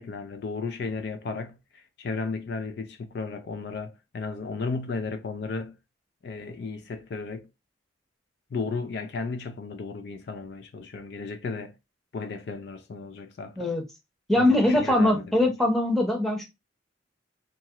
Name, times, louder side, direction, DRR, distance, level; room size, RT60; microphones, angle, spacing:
voice 1, 0.0-5.8 6.2-7.5 8.5-11.8 12.1-13.8 14.4-15.5, left 4 dB, 55° left, 0.3 m, -34 dB
voice 2, 14.3-16.4, left 1 dB, ahead, 0.7 m, -22 dB
2.8 x 2.4 x 2.8 m
head